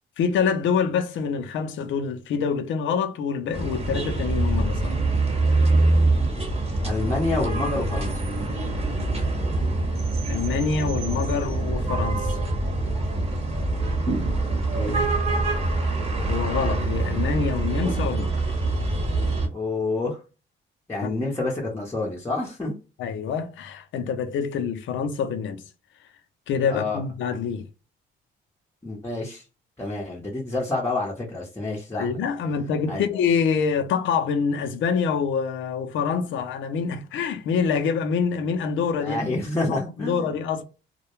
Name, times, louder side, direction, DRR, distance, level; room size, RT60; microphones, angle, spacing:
voice 1, 0.2-5.0 10.3-12.4 14.9-15.1 16.3-18.5 21.0-21.1 23.0-25.6 26.5-27.7 31.9-39.4 39.7-40.6, left 6 dB, 75° left, 0.5 m, -26 dB
sound 1, 3.5-19.5, right 2 dB, 30° right, 0.9 m, -24 dB
voice 2, 6.8-8.2 14.7-15.0 19.5-20.2 20.9-22.8 26.7-27.0 28.8-29.4 29.8-32.2 32.9-33.0 39.0-40.3, left 2 dB, 10° left, 0.7 m, -28 dB
2.2 x 2.1 x 2.9 m
cardioid pair, 90°, 20 cm